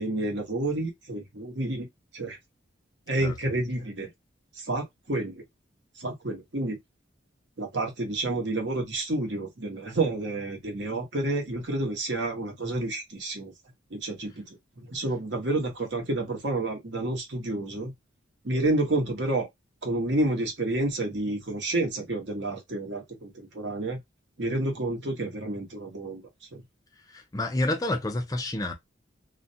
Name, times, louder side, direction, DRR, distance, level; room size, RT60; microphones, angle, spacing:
voice 1, 0.0-1.9 2.1-2.4 3.1-4.1 4.6-5.4 6.0-6.8 7.6-13.5 13.9-14.4 14.9-17.9 18.4-19.5 19.8-24.0 24.4-26.2 26.5-26.6, right 2 dB, 60° right, 0.9 m, -29 dB
voice 2, 27.1-28.7, left 1 dB, 20° left, 0.4 m, -29 dB
2.4 x 2.1 x 2.6 m
head